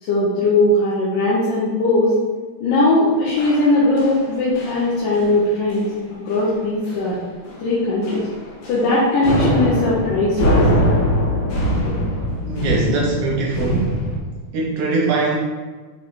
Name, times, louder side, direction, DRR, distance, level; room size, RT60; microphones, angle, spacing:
voice 1, 0.0-2.1 2.6-5.9 6.2-7.2 7.6-8.2 8.7-10.6, left 2 dB, 90° left, -7 dB, 2.7 m, -19 dB
sound 1, 3.4-4.3 4.6-4.9 5.1-5.4 5.7-5.9 6.3-6.4 6.9-7.2 7.5-7.6 8.0-8.9 9.2-14.2, equal, 70° left, 2.7 m, -22 dB
voice 2, 12.4-14.1 14.5-15.4, right 3 dB, 80° right, -2 dB, 1.4 m, -21 dB
6.1 x 5.2 x 3.4 m, 1.4 s
omnidirectional pair, 3.7 m